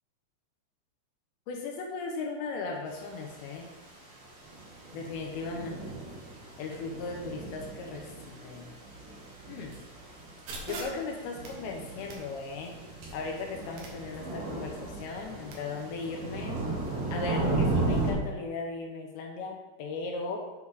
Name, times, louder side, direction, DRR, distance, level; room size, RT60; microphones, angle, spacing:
voice 1, 1.5-3.7 4.9-6.0 6.6-8.7 9.5-9.8 10.7-12.8 13.1-16.6 17.1-20.4, left 4 dB, 75° left, 1 dB, 2.9 m, -37 dB
sound 1, 2.9-3.5 3.9-18.1, right 2 dB, 50° right, 2.4 m, -35 dB
sound 2, 10.5-15.5, right 2 dB, 65° right, 2.7 m, -46 dB
8.0 x 7.1 x 3.6 m, 1.1 s
omnidirectional pair, 5.5 m